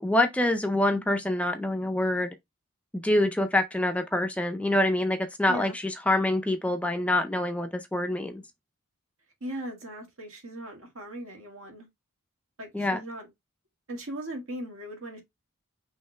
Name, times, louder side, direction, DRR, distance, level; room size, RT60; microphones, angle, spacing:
voice 1, 0.0-2.3 2.9-8.4 12.7-13.0, left 1 dB, 5° left, 0.4 m, -26 dB
voice 2, 9.4-11.9 12.6-13.3 13.9-15.2, right 1 dB, 70° right, 1.8 m, -38 dB
5.5 x 3.1 x 3.2 m
head